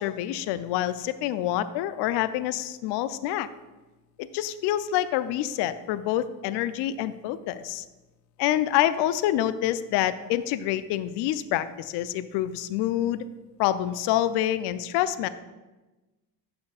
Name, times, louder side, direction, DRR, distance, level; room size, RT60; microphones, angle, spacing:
voice 1, 0.0-3.5 4.2-7.8 8.4-13.2 13.6-15.3, left 12 dB, 55° left, 14 dB, 0.6 m, -27 dB
11.0 x 6.9 x 2.4 m, 1.1 s
hypercardioid pair, 60°, 49 cm